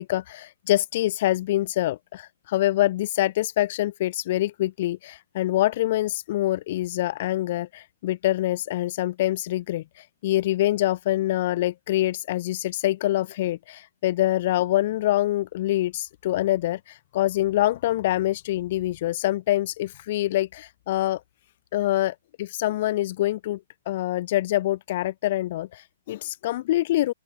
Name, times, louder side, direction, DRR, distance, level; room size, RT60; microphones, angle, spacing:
voice 1, 0.0-21.2 21.7-23.6 23.9-27.1, left 15 dB, 50° left, 0.6 m, -25 dB
open air
figure-of-eight pair, 125°, 0 cm